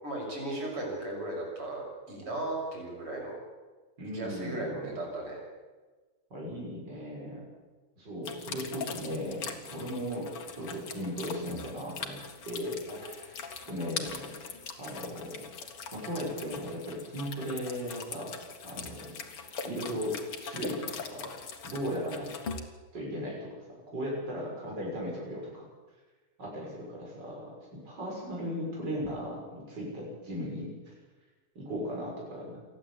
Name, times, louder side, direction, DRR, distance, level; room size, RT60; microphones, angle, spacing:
voice 1, 0.0-3.4 4.1-5.4 12.9-13.0, right 2 dB, 85° right, -1 dB, 7.5 m, -36 dB
voice 2, 4.0-4.9 6.3-7.4 8.0-12.2 12.5-13.4 13.7-14.3 14.8-15.4 15.9-18.4 18.6-19.2 19.6-21.3 21.6-22.3 22.9-23.6 23.9-25.7 26.4-27.5 27.7-30.7 31.6-32.6, equal, 50° right, -3 dB, 7.0 m, -37 dB
sound 1, 8.2-22.6, left 5 dB, 90° left, 2.9 m, -41 dB
28.5 x 11.0 x 8.5 m, 1.3 s
omnidirectional pair, 2.4 m